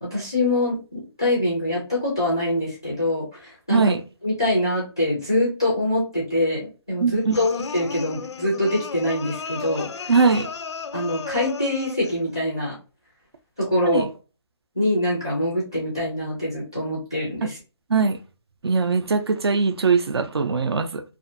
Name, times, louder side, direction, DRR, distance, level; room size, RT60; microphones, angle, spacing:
voice 1, 0.0-3.9 4.2-10.1 10.9-12.8 13.6-14.0 14.7-17.6, left 1 dB, 10° left, 0.4 m, -24 dB
voice 2, 3.7-4.0 7.0-7.4 10.1-10.5 13.8-14.1 17.9-18.2 18.6-21.0, right 4 dB, 60° right, 0.4 m, -21 dB
sound 1, 7.3-12.2, left 5 dB, 75° left, 0.4 m, -34 dB
2.5 x 2.4 x 2.5 m
hypercardioid pair, 180°, 15 cm